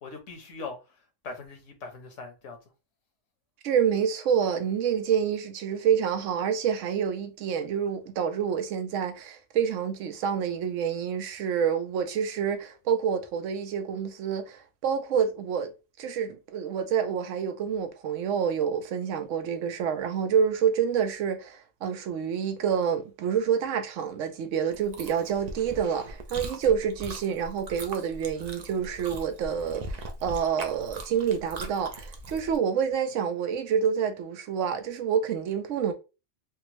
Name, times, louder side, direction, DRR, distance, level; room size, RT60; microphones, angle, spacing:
voice 1, 0.0-2.6, left 4 dB, 75° left, 1.2 m, -41 dB
voice 2, 3.6-15.7 16.0-35.9, right 7 dB, 85° right, 0.9 m, -28 dB
Chewing mastication, 24.7-32.6, right 2 dB, 55° right, 0.4 m, -40 dB
3.5 x 2.0 x 2.9 m
omnidirectional pair, 1.3 m